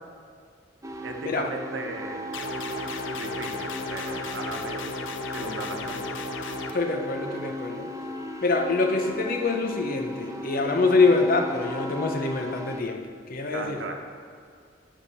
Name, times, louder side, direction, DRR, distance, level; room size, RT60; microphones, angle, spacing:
sound 1, 0.8-12.8, equal, 15° right, 0.5 m, -36 dB
voice 1, 1.0-2.4 3.2-4.9 5.3-6.1 13.5-14.0, right 2 dB, 85° right, 3 dB, 0.9 m, -36 dB
sound 2, 2.3-6.7, left 3 dB, 85° left, 0.5 m, -35 dB
voice 2, 6.7-7.9 8.4-13.0 13.3-13.8, left 3 dB, 50° left, 4 dB, 0.7 m, -25 dB
9.4 x 3.6 x 5.6 m, 2.3 s
head